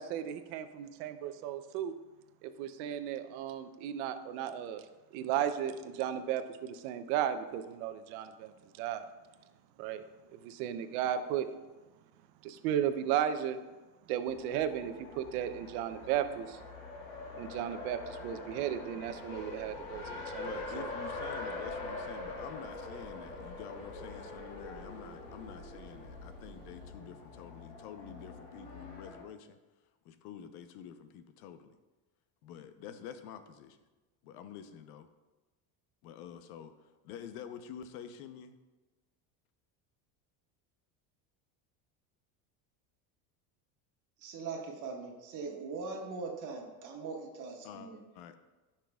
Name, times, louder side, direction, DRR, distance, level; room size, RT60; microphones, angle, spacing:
voice 1, 0.0-1.9 2.4-4.8 5.1-8.5 8.8-9.0 9.8-10.0 10.4-11.5 12.4-13.6 14.1-16.6 17.4-20.4 20.8-20.9, right 10 dB, 80° right, 10 dB, 0.7 m, -35 dB
Race car auto racing, 14.3-29.2, left 2 dB, 50° left, 1.5 m, -44 dB
sound 1, 19.1-26.9, right 4 dB, 60° right, 1.0 m, -56 dB
voice 2, 20.4-29.6 30.0-31.7 32.4-33.8 34.2-35.1 36.0-36.7 37.0-38.6 47.6-47.9 48.1-48.4, left 8 dB, 85° left, 9 dB, 0.9 m, -48 dB
voice 3, 44.2-48.0, right 4 dB, 45° right, 0 dB, 1.6 m, -41 dB
15.0 x 5.9 x 2.4 m, 1.2 s
cardioid pair, 175°, 43 cm